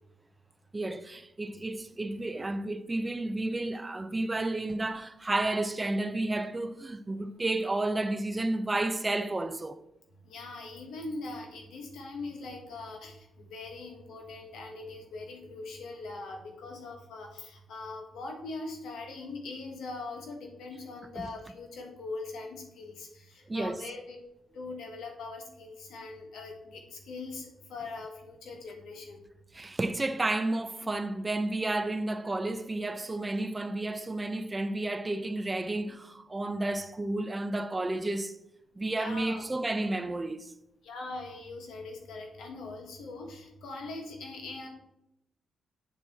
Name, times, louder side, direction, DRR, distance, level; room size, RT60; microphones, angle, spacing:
voice 1, 0.7-9.8 21.2-21.3 23.5-23.8 29.5-38.4 38.8-40.5, right 2 dB, 25° right, 0.4 m, -31 dB
voice 2, 10.2-24.2 24.5-29.2 38.9-39.5 40.8-44.7, left 3 dB, 80° left, 1.3 m, -41 dB
8.3 x 4.0 x 3.5 m
cardioid pair, 75°, 0 cm